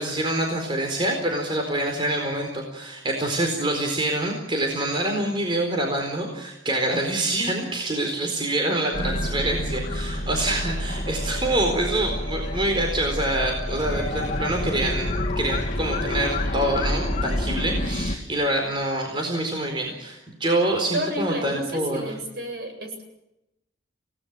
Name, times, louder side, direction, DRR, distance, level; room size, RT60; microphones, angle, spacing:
voice 1, 0.0-22.1, right 1 dB, 25° right, 2 dB, 4.2 m, -26 dB
sound 1, 8.9-18.2, left 1 dB, 35° left, 2.7 m, -28 dB
voice 2, 20.9-23.0, right 1 dB, 55° right, 5 dB, 7.5 m, -31 dB
29.0 x 18.5 x 7.5 m, 0.88 s
head